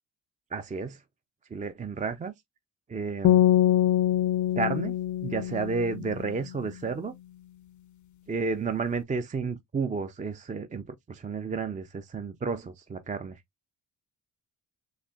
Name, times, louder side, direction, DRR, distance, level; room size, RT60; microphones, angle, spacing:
voice 1, 0.5-1.0 1.5-2.3 2.9-3.4 4.6-4.9 5.2-7.2 8.3-13.4, right 4 dB, 20° right, 0.4 m, -31 dB
sound 1, 3.2-6.4, left 12 dB, 45° left, 0.4 m, -24 dB
4.1 x 2.8 x 2.3 m
supercardioid pair, 60°, 43 cm